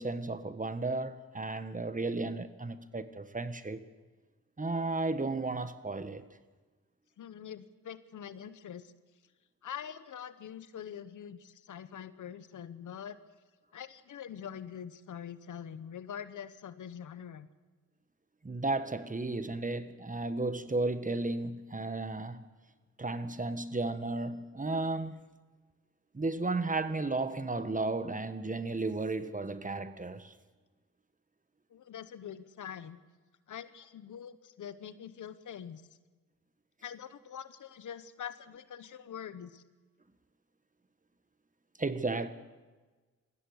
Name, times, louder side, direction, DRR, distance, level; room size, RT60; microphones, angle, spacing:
voice 1, 0.0-3.8 4.6-6.2 18.4-22.4 23.0-25.2 26.1-30.3 41.8-42.3, right 3 dB, 25° right, 1.4 m, -34 dB
voice 2, 7.2-8.9 9.6-13.2 13.7-17.5 31.7-33.0 33.5-35.8 36.8-39.6, left 8 dB, 90° left, 1.0 m, -44 dB
21.0 x 15.5 x 8.1 m
cardioid pair, 65°, 30 cm